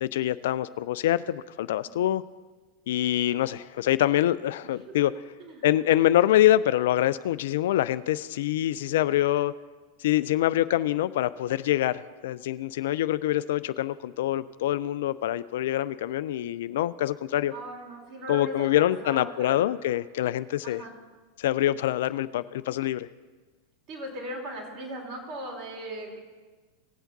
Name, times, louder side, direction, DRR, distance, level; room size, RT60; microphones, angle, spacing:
voice 1, 0.0-2.2 2.9-5.1 5.6-9.5 10.0-17.5 18.3-20.8 21.4-23.1, left 13 dB, 65° left, 16 dB, 0.3 m, -25 dB
voice 2, 17.5-19.7 20.6-20.9 23.9-26.2, equal, 45° right, -1 dB, 3.7 m, -38 dB
18.5 x 7.9 x 4.0 m, 1.4 s
hypercardioid pair, 90°, 0 cm